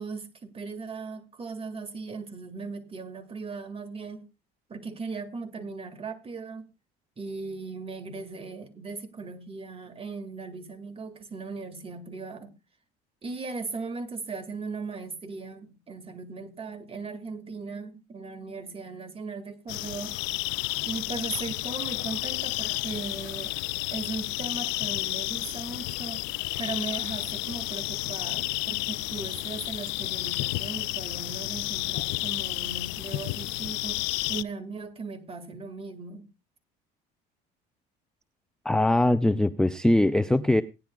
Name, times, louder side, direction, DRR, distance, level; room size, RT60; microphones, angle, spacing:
voice 1, 0.0-4.3 4.7-6.6 7.2-12.5 13.2-20.2 20.8-23.6 23.9-26.2 26.6-36.3, right 4 dB, 30° right, 8 dB, 2.2 m, -38 dB
sound 1, 19.7-34.4, left 22 dB, 80° left, 0.5 m, -31 dB
voice 2, 38.6-40.6, left 1 dB, 5° left, 12 dB, 0.5 m, -22 dB
18.0 x 10.0 x 2.3 m, 0.27 s
supercardioid pair, 90°, 19 cm